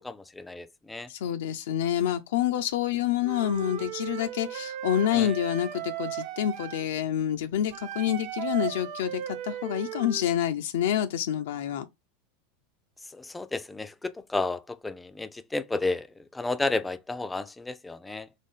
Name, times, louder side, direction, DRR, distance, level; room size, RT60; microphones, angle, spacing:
voice 1, 0.0-1.1 5.2-5.3 13.2-13.9 14.3-16.1 16.3-18.3, left 2 dB, 10° left, 0.4 m, -32 dB
voice 2, 1.1-11.9, left 11 dB, 80° left, 0.4 m, -28 dB
Wind instrument woodwind instrument, 3.2-6.9 7.7-10.3, right 10 dB, 50° right, 0.7 m, -36 dB
4.1 x 3.1 x 3.6 m
supercardioid pair, 140°, 0 cm